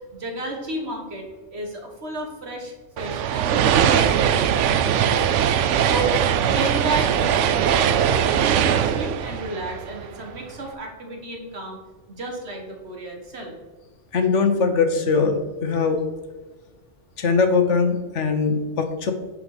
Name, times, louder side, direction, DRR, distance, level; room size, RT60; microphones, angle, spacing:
voice 1, 0.1-5.5 5.8-6.1 6.5-7.4 7.7-11.8 12.1-13.5, right 2 dB, 60° right, 1 dB, 2.1 m, -32 dB
sound 1, 3.0-10.4, right 9 dB, 80° right, 0.9 m, -21 dB
voice 2, 14.1-16.0 17.2-19.1, left 4 dB, 75° left, 7 dB, 1.4 m, -21 dB
10.5 x 4.9 x 5.0 m, 1.3 s
omnidirectional pair, 1.2 m